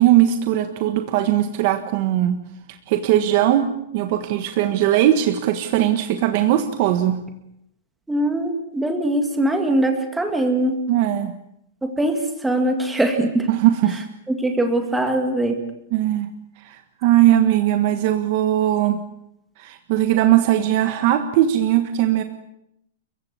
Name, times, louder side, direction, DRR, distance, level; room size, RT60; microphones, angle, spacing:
voice 1, 0.0-2.4 2.7-7.2 10.9-11.3 13.5-14.0 15.9-16.3 16.6-19.0 19.6-22.2, right 12 dB, 35° right, 8 dB, 1.4 m, -19 dB
voice 2, 8.1-10.7 11.8-12.2 12.4-13.5 14.4-15.6, right 1 dB, 5° right, 4 dB, 2.1 m, -21 dB
29.5 x 16.0 x 9.6 m, 0.79 s
supercardioid pair, 180°, 0 cm